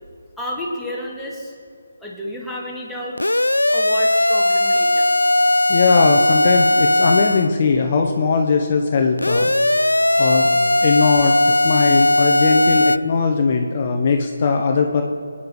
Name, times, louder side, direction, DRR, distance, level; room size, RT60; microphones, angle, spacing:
voice 1, 0.4-1.6 2.0-3.3 3.7-5.1, left 1 dB, 5° left, -5 dB, 2.1 m, -31 dB
sound 1, 3.2-7.5 9.2-13.0, left 1 dB, 90° left, 0.4 m, -17 dB
voice 2, 5.7-10.5 10.8-15.0, left 4 dB, 40° left, 3 dB, 1.0 m, -19 dB
22.5 x 10.0 x 4.8 m, 2.2 s
figure-of-eight pair, 150°, 0 cm